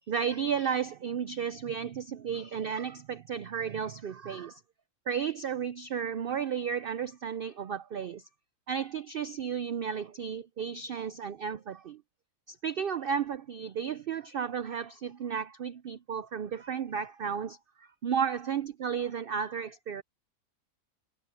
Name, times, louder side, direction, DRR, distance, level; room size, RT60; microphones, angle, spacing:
voice 1, 0.1-4.6 5.1-8.2 8.7-12.0 12.5-20.0, right 7 dB, 75° right, 0.5 m, -33 dB
omnidirectional pair, 1.6 m